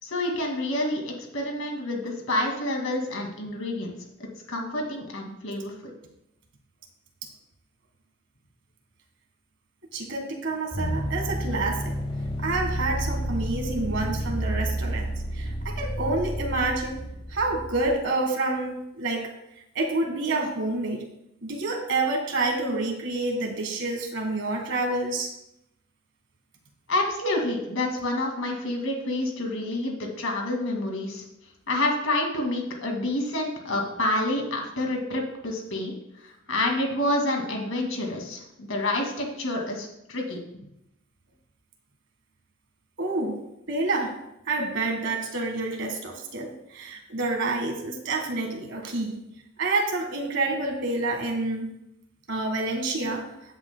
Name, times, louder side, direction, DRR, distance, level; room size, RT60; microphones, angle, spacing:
voice 1, 0.0-5.7 26.9-31.2 31.7-36.0 36.2-40.4, left 1 dB, 75° left, 1 dB, 2.2 m, -28 dB
voice 2, 9.9-11.8 12.4-15.1 15.3-17.0 17.3-19.3 19.7-21.0 21.4-25.3 43.0-43.4 43.7-44.1 44.4-49.2 49.6-51.7 52.3-53.3, right 2 dB, 60° right, 2 dB, 1.7 m, -28 dB
sound 1, 10.7-17.9, equal, 25° left, 0.9 m, -30 dB
15.5 x 8.0 x 2.2 m, 0.84 s
head